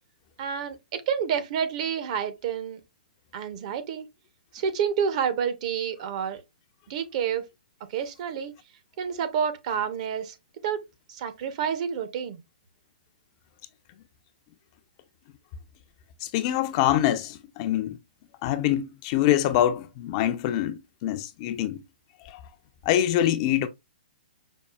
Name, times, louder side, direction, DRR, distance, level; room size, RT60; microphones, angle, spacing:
voice 1, 0.4-2.8 3.3-4.1 4.5-6.4 6.9-7.4 7.9-8.5 9.0-10.4 10.6-10.8 11.1-12.4, right 7 dB, 45° right, 0.7 m, -29 dB
voice 2, 16.2-18.0 18.4-21.8 22.3-22.4 22.9-23.7, left 12 dB, 35° left, 0.4 m, -25 dB
5.3 x 2.4 x 2.3 m
hypercardioid pair, 140°, 5 cm